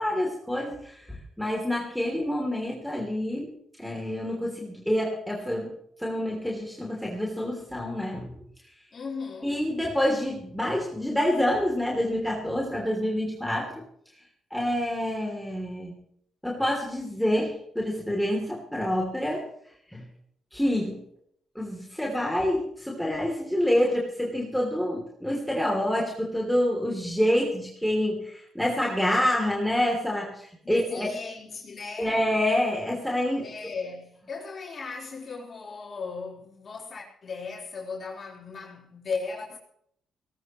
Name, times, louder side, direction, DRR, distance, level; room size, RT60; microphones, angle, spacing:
voice 1, 0.0-3.5 3.8-8.3 9.4-13.9 14.1-14.2 14.5-16.0 16.4-19.5 19.9-20.0 20.5-21.0 21.5-31.1 32.0-33.5, left 1 dB, 5° left, 3.0 m, -27 dB
voice 2, 8.9-9.6 30.6-32.2 33.4-39.6, left 4 dB, 45° left, 4.1 m, -37 dB
19.0 x 18.5 x 3.1 m
cardioid pair, 95°, 0 cm